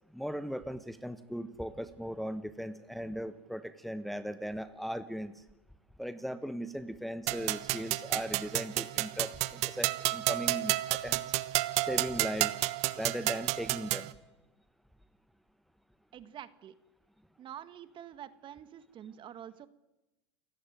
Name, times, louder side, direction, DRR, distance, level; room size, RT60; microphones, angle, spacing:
voice 1, 0.1-5.4 6.0-11.2 11.8-12.6 13.0-14.1, equal, ahead, 10 dB, 1.2 m, -38 dB
sound 1, 7.3-14.1, right 18 dB, 50° right, 1.3 m, -31 dB
voice 2, 16.1-16.8 17.4-19.7, right 10 dB, 35° right, 13 dB, 1.7 m, -47 dB
29.0 x 16.0 x 9.3 m, 0.99 s
hypercardioid pair, 110°, 14 cm